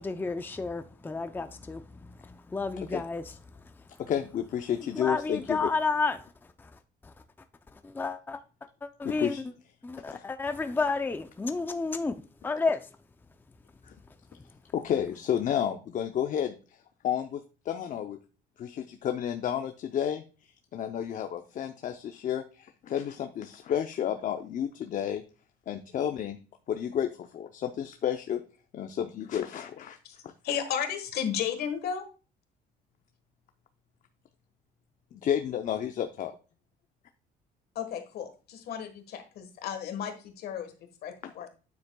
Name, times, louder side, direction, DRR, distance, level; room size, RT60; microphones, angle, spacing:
voice 1, 0.0-3.4 4.8-6.3 6.6-6.7 7.0-7.1 7.7-8.4 8.8-9.4 9.8-12.1 12.4-12.9, left 3 dB, 10° left, 0.5 m, -31 dB
voice 2, 4.0-5.7 9.0-9.4 10.1-10.2 13.8-13.9 14.7-16.6 17.0-18.2 18.6-20.2 20.7-25.2 25.7-26.4 26.7-28.4 28.7-30.0 30.2-30.3 35.1-36.3 41.2-41.3, left 9 dB, 50° left, 0.7 m, -31 dB
voice 3, 30.4-32.1 37.7-41.5, left 8 dB, 70° left, 1.5 m, -34 dB
9.4 x 7.2 x 2.3 m
cardioid pair, 110°, 17 cm